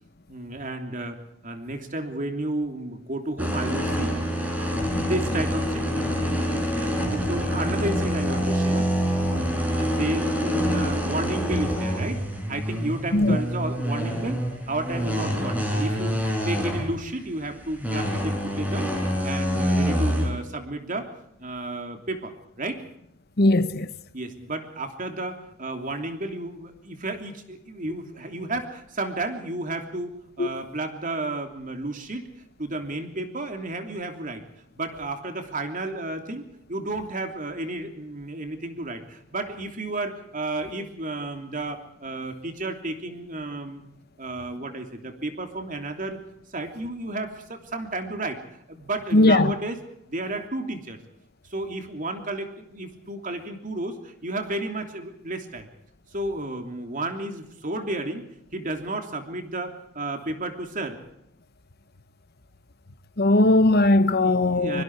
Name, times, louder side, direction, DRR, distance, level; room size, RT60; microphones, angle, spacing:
voice 1, 0.3-1.2 1.4-4.2 4.7-6.9 7.3-8.9 9.2-12.2 12.5-16.2 16.4-18.9 19.2-21.1 21.4-22.8 24.1-32.3 32.6-34.4 34.8-36.4 36.7-43.8 44.2-46.2 46.5-48.4 48.7-49.8 50.1-51.0 51.5-55.7 56.1-58.3 58.5-61.0 64.2-64.8, right 2 dB, 45° right, 3.1 m, -32 dB
sound 1, 3.4-17.3 17.6-20.3, equal, 10° right, 5.4 m, -26 dB
voice 2, 23.4-23.9 30.4-30.5 49.1-49.5 63.2-64.8, left 2 dB, 55° left, 1.2 m, -19 dB
24.5 x 24.0 x 4.8 m
head